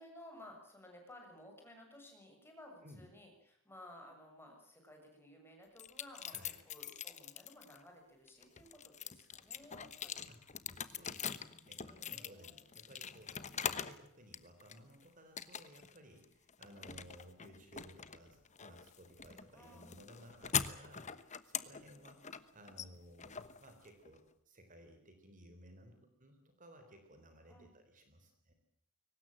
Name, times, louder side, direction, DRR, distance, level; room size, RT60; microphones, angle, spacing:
voice 1, 0.0-6.3 6.6-10.3 11.8-12.6 13.3-13.8 19.5-20.0 27.5-27.7, left 1 dB, 10° left, 2 dB, 6.8 m, -57 dB
sound 1, 5.8-7.8 8.3-14.0 14.3-15.0 15.4-16.0 16.2-24.2, left 8 dB, 30° left, 1.1 m, -43 dB
voice 2, 6.3-6.6 10.3-10.4 10.8-22.2 22.5-28.5, equal, 35° right, 6 dB, 3.9 m, -58 dB
23.0 x 19.0 x 9.0 m, 0.71 s
head